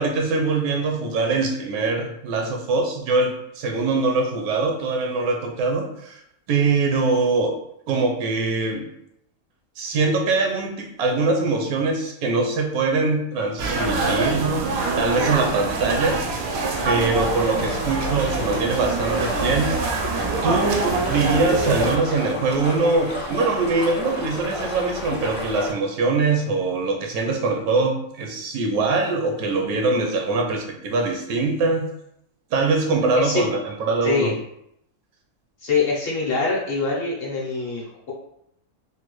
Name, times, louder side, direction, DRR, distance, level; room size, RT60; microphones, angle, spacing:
voice 1, 0.0-6.2 6.5-7.5 7.9-8.9 9.8-14.5 15.0-16.2 16.8-19.8 20.4-31.9 32.5-34.3, right 3 dB, 85° right, 2 dB, 1.1 m, -23 dB
sound 1, 13.6-22.0, right 3 dB, 65° right, 0.6 m, -25 dB
sound 2, 16.7-25.7, left 1 dB, 10° left, 0.4 m, -31 dB
voice 2, 35.6-38.1, left 4 dB, 55° left, -4 dB, 0.8 m, -24 dB
3.4 x 2.2 x 3.0 m, 0.76 s
omnidirectional pair, 1.5 m